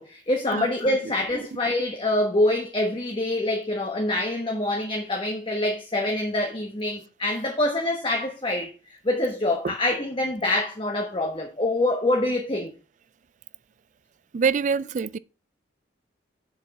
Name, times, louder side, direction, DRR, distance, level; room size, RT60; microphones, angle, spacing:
voice 1, 0.0-8.7 9.0-12.7, left 1 dB, 25° left, 1.1 m, -25 dB
voice 2, 14.3-15.2, right 5 dB, 40° right, 0.3 m, -25 dB
7.3 x 6.1 x 4.7 m
head